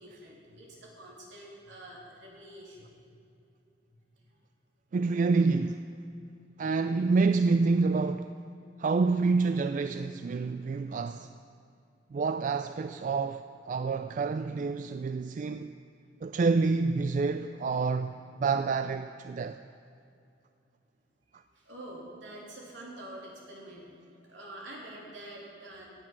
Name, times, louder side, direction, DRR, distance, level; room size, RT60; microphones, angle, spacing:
voice 1, 0.0-3.0 4.3-4.4 21.5-25.9, right 1 dB, 70° right, 3.3 m, -46 dB
voice 2, 4.9-5.9 6.6-8.3 8.8-11.3 12.1-15.7 16.2-19.6, right 4 dB, 45° right, 0.3 m, -28 dB
17.0 x 9.1 x 6.0 m
head